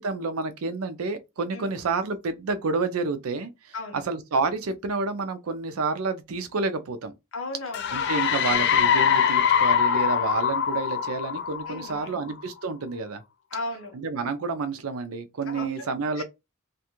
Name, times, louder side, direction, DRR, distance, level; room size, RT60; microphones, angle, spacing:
voice 1, 0.0-7.1 7.9-13.2 13.9-16.2, right 4 dB, 85° right, 0.5 m, -29 dB
voice 2, 7.3-7.9 11.7-12.2 13.5-13.9 15.5-15.9 16.2-16.3, left 2 dB, 70° left, 0.9 m, -35 dB
sound 1, 7.7-12.3, left 7 dB, 55° left, 0.4 m, -23 dB
2.5 x 2.3 x 2.9 m
head